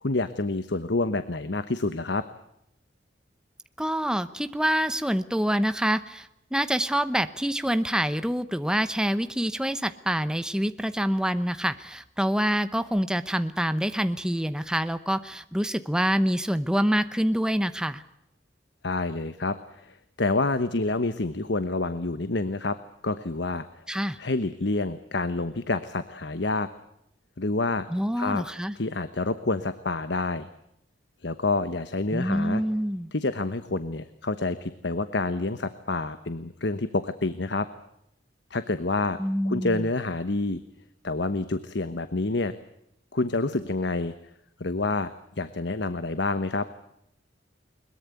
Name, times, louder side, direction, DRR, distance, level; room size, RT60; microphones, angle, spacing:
voice 1, 0.0-2.2 18.8-22.8 23.0-23.7 24.2-26.7 27.4-27.9 28.2-28.4 28.8-30.5 31.2-32.6 33.1-37.7 38.5-39.2 39.4-40.6 41.0-42.5 43.1-44.1 44.6-45.1 45.4-46.7, left 2 dB, 65° left, 11 dB, 1.1 m, -28 dB
voice 2, 3.8-18.0 23.9-24.2 27.9-28.8 32.1-33.1 39.2-39.9, equal, 5° right, 11 dB, 0.8 m, -26 dB
21.5 x 21.5 x 8.4 m, 0.79 s
head